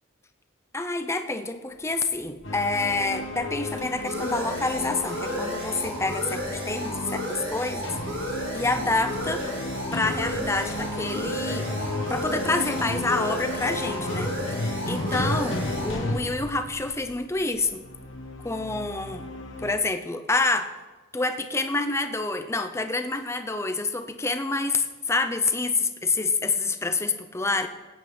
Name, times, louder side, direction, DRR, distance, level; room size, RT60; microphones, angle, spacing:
voice 1, 0.7-9.5 9.9-11.7 12.1-17.8 18.4-19.3 19.6-20.7 21.1-27.7, left 3 dB, 15° left, 8 dB, 0.6 m, -28 dB
sound 1, 2.2-17.6, right 1 dB, 70° right, 3.1 m, -35 dB
sound 2, 2.4-19.7, left 2 dB, 75° left, 1.2 m, -33 dB
17.5 x 9.1 x 3.3 m, 1.2 s
head